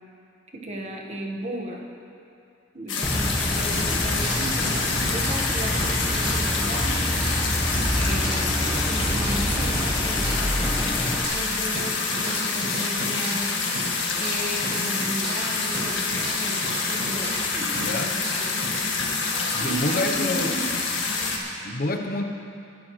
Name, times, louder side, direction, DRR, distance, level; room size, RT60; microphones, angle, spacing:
voice 1, 0.5-1.8 2.7-7.0 8.0-8.6 8.9-10.5 11.3-13.5 14.1-18.1 18.4-18.5 19.6-20.6, right 1 dB, 35° right, 0 dB, 1.4 m, -34 dB
sound 1, 2.9-21.4, left 4 dB, 70° left, 1.7 m, -27 dB
sound 2, 3.0-11.2, equal, 5° left, 1.1 m, -27 dB
sound 3, 3.7-5.5 5.7-9.5 9.7-13.5 13.7-17.5 17.7-19.7, right 1 dB, 55° right, 2.9 m, -36 dB
voice 2, 17.8-18.1 19.5-20.5 21.6-22.2, left 2 dB, 50° left, 4 dB, 0.8 m, -27 dB
21.0 x 11.5 x 3.2 m, 2.5 s
head